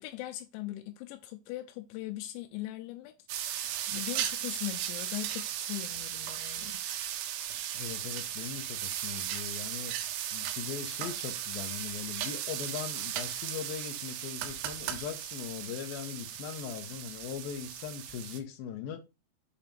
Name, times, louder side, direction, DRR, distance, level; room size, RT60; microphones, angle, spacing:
voice 1, 0.0-6.8, left 16 dB, 90° left, 3.0 m, -40 dB
sound 1, 3.3-18.4, right 11 dB, 90° right, 2.9 m, -36 dB
voice 2, 7.7-9.9 10.3-19.0, left 8 dB, 75° left, 2.3 m, -40 dB
7.2 x 2.9 x 5.2 m
omnidirectional pair, 5.1 m